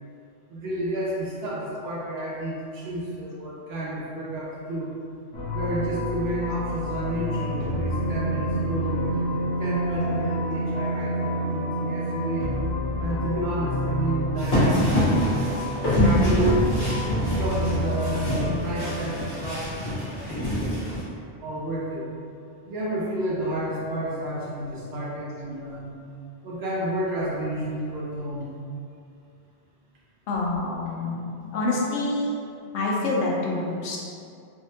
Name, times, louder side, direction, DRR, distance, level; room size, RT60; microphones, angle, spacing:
voice 1, 0.5-4.9 5.5-12.4 13.0-15.3 15.9-16.6 17.2-21.0 21.4-22.1 22.7-26.0 26.4-28.5, right 1 dB, 70° right, -5 dB, 0.8 m, -31 dB
sound 1, 5.3-19.2, equal, 35° left, 0.6 m, -29 dB
sound 2, 14.4-21.0, left 1 dB, 65° left, 1.2 m, -25 dB
voice 2, 30.3-31.2 31.5-32.3 32.7-34.0, left 2 dB, 90° left, -4 dB, 0.9 m, -26 dB
3.4 x 2.1 x 2.7 m, 2.5 s
omnidirectional pair, 1.1 m